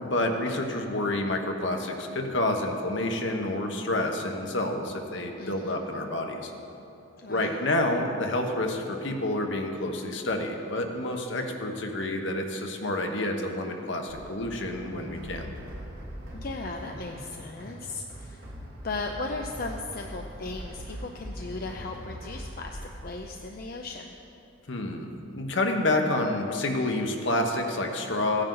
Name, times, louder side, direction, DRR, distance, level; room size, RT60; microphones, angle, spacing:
voice 1, 0.0-6.5 7.3-15.5 24.7-28.4, left 1 dB, 65° left, 3 dB, 1.1 m, -29 dB
voice 2, 5.4-5.8 7.2-7.6 16.3-18.4 18.8-24.1, left 3 dB, 45° left, 2 dB, 0.6 m, -37 dB
sound 1, 14.1-22.8, equal, 45° right, 2.6 m, -41 dB
15.5 x 9.8 x 3.9 m, 2.8 s
head